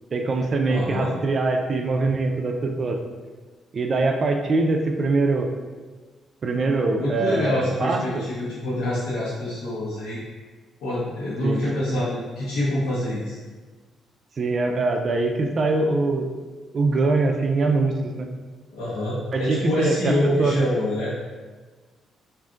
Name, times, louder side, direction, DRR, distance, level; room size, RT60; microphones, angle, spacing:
voice 1, 0.1-3.0 3.7-5.5 6.4-8.2 11.4-11.7 14.4-16.3 16.7-18.3 19.3-20.7, right 3 dB, 45° right, 4 dB, 0.4 m, -23 dB
voice 2, 0.7-1.1 6.9-10.2 10.8-13.4 18.7-21.1, left 1 dB, 90° left, -10 dB, 0.9 m, -26 dB
3.7 x 2.5 x 2.4 m, 1.4 s
cardioid pair, 90°, 0 cm